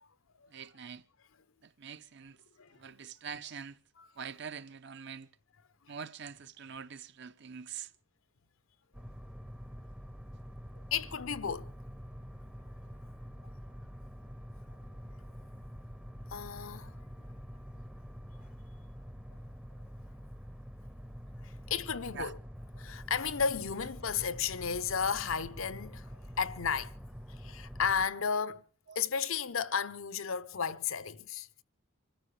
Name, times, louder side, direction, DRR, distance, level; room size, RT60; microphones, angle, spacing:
voice 1, 0.5-1.0 1.6-2.4 2.7-3.8 4.2-5.3 5.9-7.9 22.1-22.3 28.9-29.0, right 7 dB, 55° right, 0.7 m, -44 dB
sound 1, 8.9-28.1, equal, 5° right, 0.6 m, -46 dB
voice 2, 10.9-11.7 16.3-16.9 21.4-22.4 22.8-26.9 27.3-28.6 29.0-31.5, left 6 dB, 75° left, 0.7 m, -33 dB
26.0 x 14.0 x 3.3 m
head